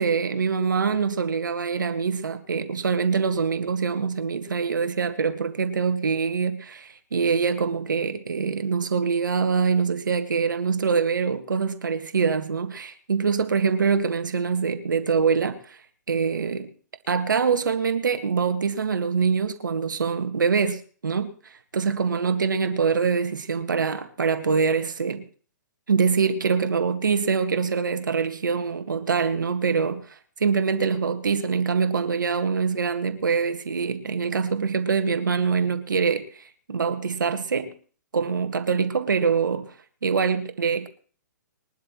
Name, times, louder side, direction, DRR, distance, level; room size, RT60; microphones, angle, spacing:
voice 1, 0.0-15.8 16.1-16.7 17.1-25.2 25.9-37.7 38.1-39.7 40.0-40.9, right 5 dB, 85° right, 1.7 m, -24 dB
21.5 x 12.5 x 3.0 m
hypercardioid pair, 130°, 10 cm